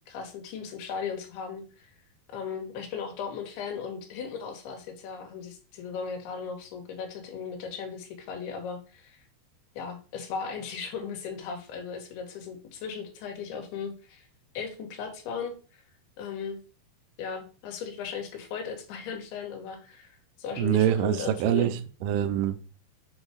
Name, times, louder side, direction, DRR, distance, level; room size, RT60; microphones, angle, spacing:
voice 1, 0.1-1.9 2.3-9.2 9.8-14.3 14.5-15.8 16.2-16.6 17.2-20.1 20.4-21.8, left 6 dB, 80° left, 4 dB, 3.2 m, -37 dB
voice 2, 20.6-22.6, right 11 dB, 85° right, 9 dB, 1.9 m, -25 dB
7.4 x 2.8 x 4.8 m, 0.36 s
omnidirectional pair, 4.5 m